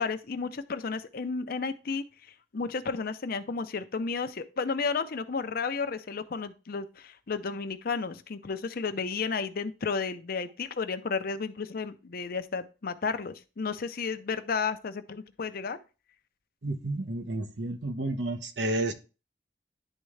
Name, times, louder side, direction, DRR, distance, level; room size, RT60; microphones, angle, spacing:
voice 1, 0.0-2.0 2.5-15.8, left 5 dB, 55° left, 10 dB, 0.6 m, -32 dB
voice 2, 16.6-18.9, right 2 dB, 80° right, 7 dB, 1.0 m, -31 dB
10.5 x 3.6 x 3.2 m, 0.32 s
head